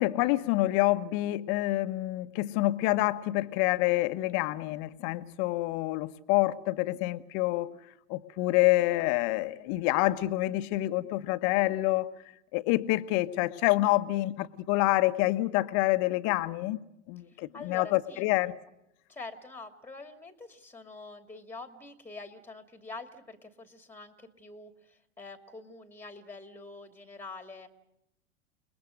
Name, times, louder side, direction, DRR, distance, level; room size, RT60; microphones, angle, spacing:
voice 1, 0.0-7.7 8.1-12.1 12.5-16.8 17.1-18.5, left 18 dB, 45° left, 11 dB, 1.3 m, -27 dB
voice 2, 17.3-18.2 19.1-27.7, left 3 dB, 5° left, 8 dB, 2.4 m, -45 dB
29.5 x 20.5 x 6.5 m, 0.83 s
hypercardioid pair, 100°, 39 cm